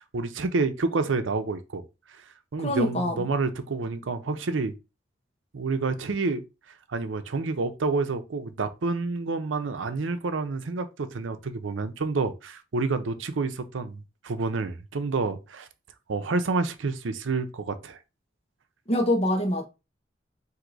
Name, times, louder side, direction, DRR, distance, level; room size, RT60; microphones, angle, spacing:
voice 1, 0.0-1.8 2.5-4.7 5.5-6.4 6.9-15.7 16.1-18.0, right 3 dB, 90° right, 0.6 m, -28 dB
voice 2, 2.6-3.2 18.9-19.6, left 1 dB, 35° left, 1.0 m, -24 dB
4.7 x 2.7 x 3.9 m
head